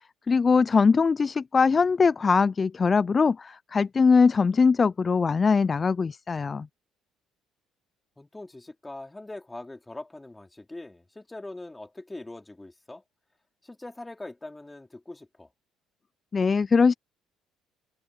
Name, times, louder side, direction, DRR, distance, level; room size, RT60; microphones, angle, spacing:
voice 1, 0.3-6.7 16.3-16.9, left 5 dB, 35° left, 0.5 m, -21 dB
voice 2, 8.2-13.0 13.6-15.5, left 2 dB, 15° left, 4.8 m, -42 dB
hypercardioid pair, 50°, 0 cm